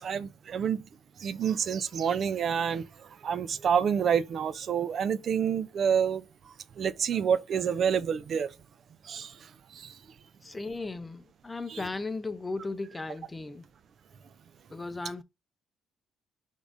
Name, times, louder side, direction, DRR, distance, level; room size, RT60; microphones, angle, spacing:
voice 1, 0.0-0.8 1.2-2.9 3.2-6.2 6.8-8.5 9.0-9.3 9.7-9.9 11.7-11.9, right 7 dB, 55° right, 0.4 m, -28 dB
voice 2, 10.4-13.6 14.7-15.2, left 3 dB, 20° left, 0.5 m, -36 dB
4.7 x 3.6 x 2.6 m
cardioid pair, 85°, 0 cm